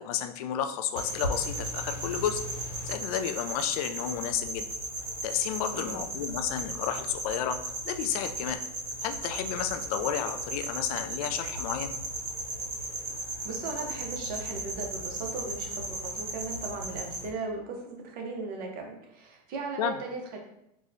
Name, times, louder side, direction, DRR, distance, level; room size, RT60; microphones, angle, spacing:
voice 1, 0.0-2.4 2.8-4.7 5.2-7.6 7.8-8.6 9.0-11.9 19.8-20.0, left 9 dB, 65° left, 8 dB, 0.4 m, -31 dB
sound 1, 1.0-17.3, right 2 dB, 75° right, 1.1 m, -36 dB
voice 2, 5.7-6.0 13.4-20.4, right 3 dB, 50° right, 1 dB, 0.9 m, -37 dB
4.2 x 2.3 x 2.6 m, 0.79 s
hypercardioid pair, 110°, 20 cm